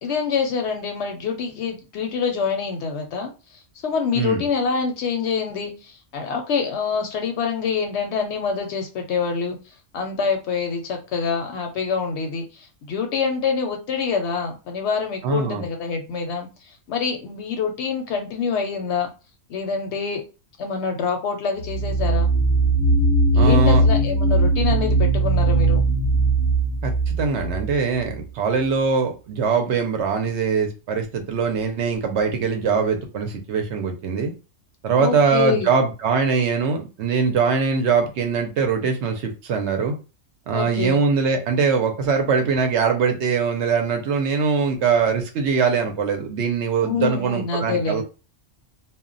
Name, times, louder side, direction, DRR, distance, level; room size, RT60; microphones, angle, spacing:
voice 1, 0.0-9.6 9.9-19.1 19.5-20.2 20.6-22.3 23.3-25.8 35.0-35.7 40.5-41.0 46.8-48.0, left 5 dB, 65° left, 0.8 m, -26 dB
voice 2, 15.2-15.6 23.4-23.8 26.8-34.3 34.8-39.9 40.5-48.0, right 5 dB, 65° right, 0.8 m, -22 dB
sound 1, 21.6-28.2, right 2 dB, 30° left, 0.6 m, -19 dB
2.2 x 2.1 x 3.7 m
omnidirectional pair, 1.3 m